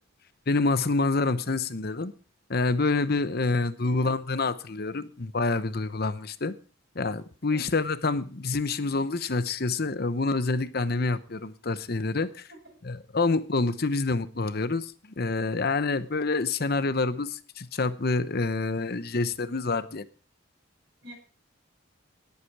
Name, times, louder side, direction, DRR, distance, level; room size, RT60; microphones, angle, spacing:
voice 1, 0.5-2.1 2.5-6.5 6.9-12.5 12.9-20.0, left 3 dB, 50° left, 14 dB, 0.9 m, -27 dB
voice 2, 3.8-4.1 7.5-7.7 12.5-12.8 21.0-21.1, left 1 dB, 55° right, 1 dB, 7.8 m, -46 dB
18.5 x 8.4 x 4.7 m, 0.37 s
head